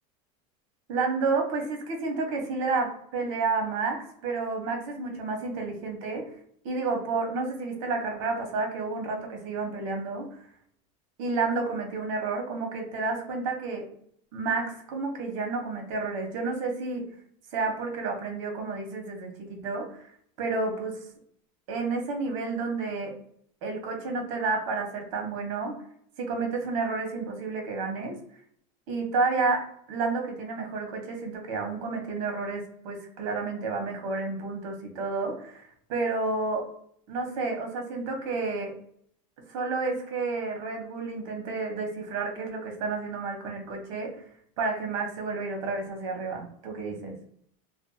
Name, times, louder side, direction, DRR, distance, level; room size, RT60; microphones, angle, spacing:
voice 1, 0.9-6.2 6.6-10.3 11.2-13.8 14.3-17.0 17.5-20.1 20.4-21.0 21.7-23.1 23.6-25.7 26.2-28.2 28.9-29.6 29.9-36.7 37.1-38.7 39.5-44.1 44.6-47.1, right 3 dB, 65° right, 3 dB, 0.9 m, -30 dB
2.5 x 2.2 x 2.6 m, 0.67 s
cardioid pair, 175°, 17 cm